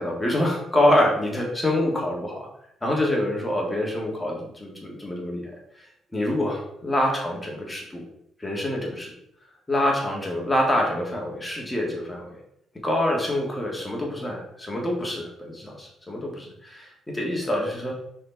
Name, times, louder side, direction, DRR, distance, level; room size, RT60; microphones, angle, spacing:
voice 1, 0.0-2.5 2.8-5.5 6.1-8.0 8.4-9.1 9.7-12.4 12.8-17.9, left 1 dB, 15° left, -1 dB, 1.9 m, -26 dB
4.9 x 4.2 x 4.5 m, 0.75 s
cardioid pair, 90°, 0 cm